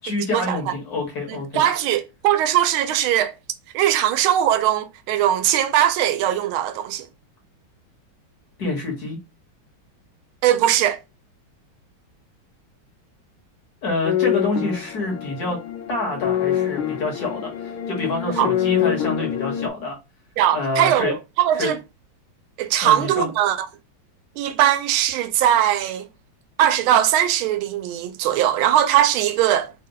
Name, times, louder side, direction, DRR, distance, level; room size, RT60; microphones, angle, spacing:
voice 1, 0.0-1.6 8.6-9.2 13.8-15.6 15.9-17.5 17.9-20.0 20.5-21.1 21.6-21.7 22.8-23.3, left 2 dB, 55° left, 1.7 m, -27 dB
voice 2, 1.5-3.3 3.7-7.1 10.4-11.0 18.4-18.5 20.4-21.8 22.6-23.7 24.4-26.1 26.6-29.7, right 11 dB, 85° right, 1.4 m, -20 dB
sound 1, 14.0-19.7, left 10 dB, 85° left, 1.6 m, -25 dB
4.0 x 2.1 x 3.8 m
omnidirectional pair, 2.2 m